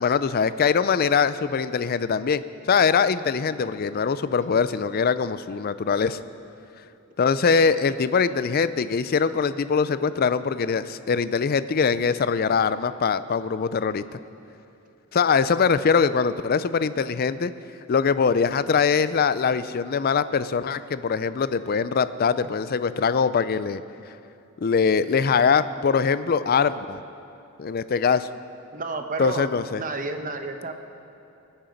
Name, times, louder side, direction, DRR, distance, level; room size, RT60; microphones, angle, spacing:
voice 1, 0.0-6.2 7.2-14.2 15.1-17.5 17.9-23.8 24.6-27.0 27.6-28.3 29.2-29.8, left 5 dB, 45° left, 14 dB, 0.4 m, -22 dB
voice 2, 28.7-29.5 29.8-30.7, right 3 dB, 40° right, 6 dB, 0.9 m, -31 dB
21.0 x 8.9 x 5.2 m, 2.7 s
head